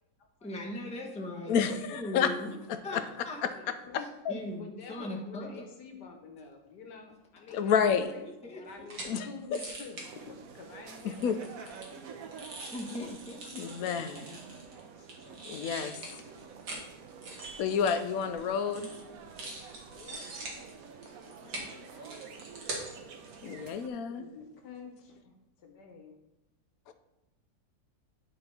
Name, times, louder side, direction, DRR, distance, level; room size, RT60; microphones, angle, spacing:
voice 1, 0.4-2.5 2.8-3.6 4.0-5.6 7.5-7.6 8.4-8.9 12.7-14.0, left 1 dB, 5° left, 0 dB, 0.8 m, -40 dB
voice 2, 1.5-2.3 2.7-3.0 3.4-3.5 3.9-4.3 7.5-8.1 9.0-9.6 11.0-11.4 13.5-14.4 15.4-15.9 17.6-18.9 23.4-24.3, left 7 dB, 70° left, 9 dB, 1.0 m, -30 dB
voice 3, 3.7-4.1 4.6-8.2 8.5-11.8 15.3-16.4 19.9-20.3 21.0-22.2 24.1-25.2 25.6-26.2, left 5 dB, 85° left, 4 dB, 1.7 m, -49 dB
sound 1, 8.7-9.1 9.5-10.1 10.9-14.8 15.1-16.8 17.1-18.5 18.7-19.0 19.3-23.0 23.2-23.4, right 2 dB, 80° right, 2.1 m, -43 dB
sound 2, 10.0-23.9, right 6 dB, 65° right, 1.1 m, -49 dB
10.5 x 4.0 x 4.2 m, 0.96 s
omnidirectional pair, 1.7 m